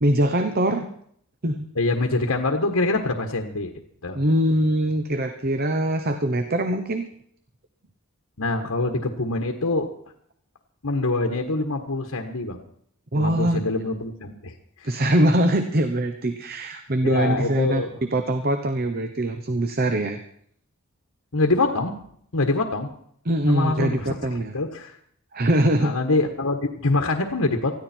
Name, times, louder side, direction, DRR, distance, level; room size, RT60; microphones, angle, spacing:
voice 1, 0.0-0.9 1.4-1.7 4.1-7.1 13.1-13.6 14.8-17.8 18.1-20.2 23.3-24.6 25.3-25.9, right 1 dB, 45° right, 8 dB, 1.1 m, -22 dB
voice 2, 1.7-3.7 4.0-4.2 8.4-9.9 10.8-12.6 13.1-14.9 17.0-17.9 21.3-22.0 22.3-22.9 23.5-25.0 25.8-27.8, left 2 dB, 85° left, 4 dB, 1.6 m, -25 dB
20.0 x 14.5 x 4.5 m, 0.66 s
head